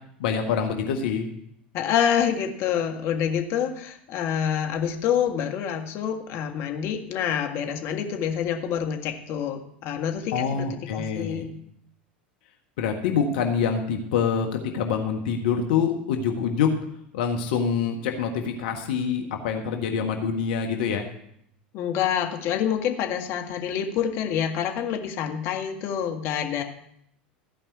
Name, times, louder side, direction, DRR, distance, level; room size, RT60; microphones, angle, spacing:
voice 1, 0.2-1.3 10.3-11.5 12.8-16.7 17.1-21.0, left 6 dB, 70° left, 3 dB, 1.6 m, -26 dB
voice 2, 1.7-10.7 10.9-11.5 21.7-26.6, left 8 dB, 50° left, 4 dB, 1.7 m, -27 dB
15.5 x 5.4 x 8.4 m, 0.72 s
hypercardioid pair, 85°, 5 cm